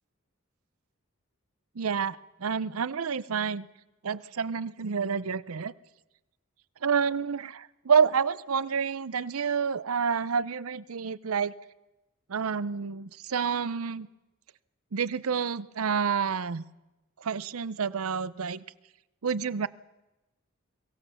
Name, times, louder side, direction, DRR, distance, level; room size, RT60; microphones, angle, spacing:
voice 1, 1.8-3.7 4.0-5.7 6.8-11.5 12.3-14.1 14.9-16.6 17.2-18.6 19.2-19.7, right 6 dB, 80° right, 18 dB, 0.6 m, -28 dB
22.5 x 17.0 x 7.0 m, 1.0 s
head